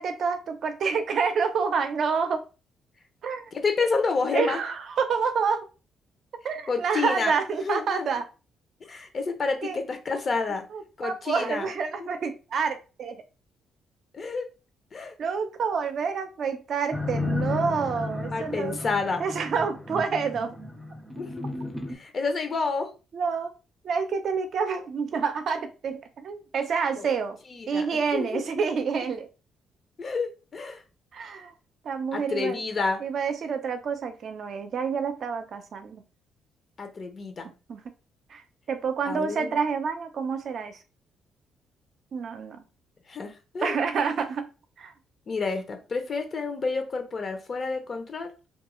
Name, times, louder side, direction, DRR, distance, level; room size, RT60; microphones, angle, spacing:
voice 1, 0.0-2.4 3.2-3.5 4.3-5.7 6.4-8.3 9.6-9.8 10.7-13.2 15.2-18.8 19.2-20.6 23.1-23.5 23.8-27.4 27.7-29.3 31.1-31.5 31.8-32.6 33.0-36.0 37.7-37.8 38.3-40.8 42.1-42.6 43.6-44.5 44.8-44.9, right 5 dB, 60° right, 8 dB, 0.5 m, -28 dB
voice 2, 3.5-4.6 6.7-7.3 7.6-8.1 8.8-10.6 11.0-11.7 12.0-12.1 14.1-14.5 14.9-15.2 18.3-19.2 21.2-21.4 21.9-22.9 27.0-27.1 27.5-28.5 30.0-30.8 32.1-33.0 36.8-37.5 39.1-39.6 43.1-43.8 45.3-48.3, left 4 dB, 45° left, 6 dB, 0.6 m, -29 dB
sound 1, 16.9-21.9, left 2 dB, 5° right, 0.5 m, -33 dB
2.3 x 2.3 x 3.0 m, 0.32 s
cardioid pair, 90°, 0 cm